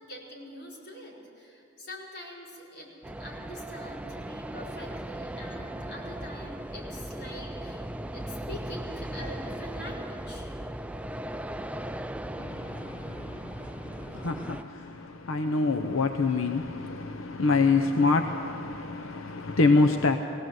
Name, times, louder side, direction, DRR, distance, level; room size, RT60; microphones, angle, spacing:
voice 1, 0.0-2.9 3.2-7.8 8.1-10.8, equal, 55° left, -4 dB, 4.7 m, -44 dB
sound 1, 3.0-14.6, right 1 dB, 5° right, 0.4 m, -38 dB
voice 2, 12.3-20.2, left 3 dB, 90° left, 5 dB, 0.8 m, -26 dB
20.0 x 17.5 x 7.8 m, 2.7 s
head